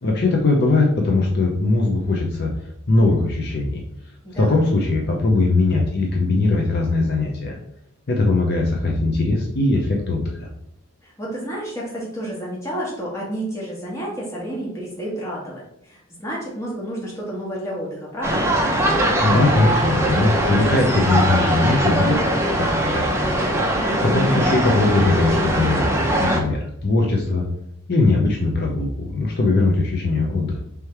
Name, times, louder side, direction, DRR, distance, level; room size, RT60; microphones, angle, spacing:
voice 1, 0.0-2.5 2.9-7.6 8.1-10.5 19.2-23.4 24.0-27.5 27.9-30.6, left 2 dB, 50° left, 0 dB, 0.5 m, -20 dB
voice 2, 4.2-4.6 11.0-18.5 23.7-24.3, right 1 dB, 15° left, -4 dB, 1.3 m, -31 dB
sound 1, 18.2-26.4, right 1 dB, 10° right, 0.5 m, -21 dB
3.3 x 3.2 x 4.5 m, 0.76 s
head